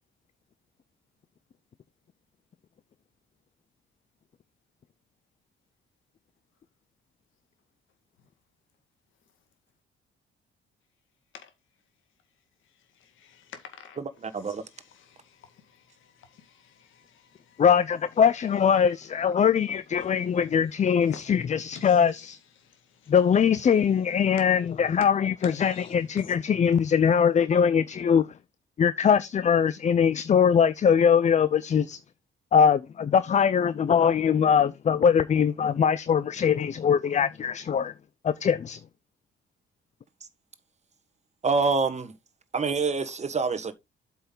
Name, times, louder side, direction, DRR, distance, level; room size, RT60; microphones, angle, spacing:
voice 1, 13.0-14.0 15.1-17.6 21.1-21.2 21.8-22.0 22.6-23.1 25.4-25.9, left 7 dB, 80° left, 1.9 m, -49 dB
voice 2, 13.9-14.6 40.2-40.3 41.4-42.2 42.5-43.7, right 4 dB, 35° right, 1.4 m, -26 dB
voice 3, 17.6-22.4 23.1-28.3 28.8-32.0 32.5-37.9 38.2-38.8, left 7 dB, 35° left, 0.5 m, -22 dB
8.0 x 5.7 x 3.8 m
cardioid pair, 90°, 20 cm